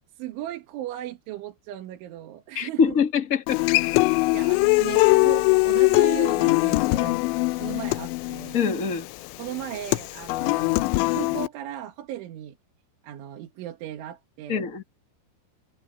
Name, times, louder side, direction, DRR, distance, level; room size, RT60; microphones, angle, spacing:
voice 1, 0.1-3.0 4.3-7.2 7.5-8.6 9.4-10.8 11.1-12.6 13.0-14.7, right 12 dB, 85° right, 4.1 m, -36 dB
voice 2, 2.5-3.6 8.5-9.1 14.5-14.8, left 6 dB, 55° left, 0.9 m, -24 dB
Human voice / Acoustic guitar, 3.5-11.5, left 24 dB, 85° left, 2.9 m, -22 dB
omnidirectional pair, 5.3 m